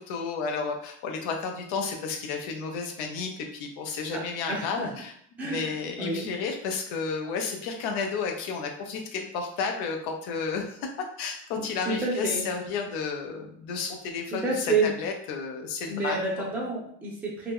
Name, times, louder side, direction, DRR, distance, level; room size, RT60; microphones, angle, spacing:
voice 1, 0.0-5.1 5.4-10.8 11.2-16.2, left 5 dB, 85° left, 3 dB, 0.8 m, -32 dB
voice 2, 4.5-4.9 5.4-6.3 11.6-12.5 14.3-14.9 15.9-17.5, right 3 dB, 5° right, -4 dB, 0.4 m, -29 dB
2.8 x 2.2 x 3.5 m, 0.64 s
cardioid pair, 170°, 36 cm